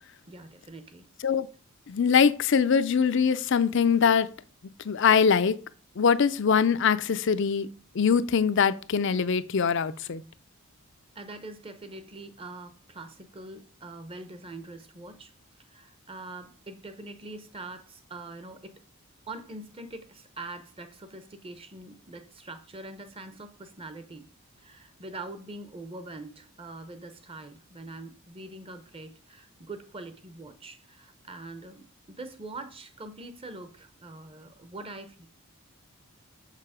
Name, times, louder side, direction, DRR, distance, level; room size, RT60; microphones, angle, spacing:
voice 1, 0.3-1.1 11.1-15.3 15.7-18.7 19.3-24.3 24.6-35.3, right 2 dB, 25° right, 0.7 m, -43 dB
voice 2, 1.9-4.3 4.8-5.6 6.0-7.7 7.9-10.2, left 6 dB, 55° left, 0.4 m, -23 dB
6.6 x 6.4 x 4.9 m
head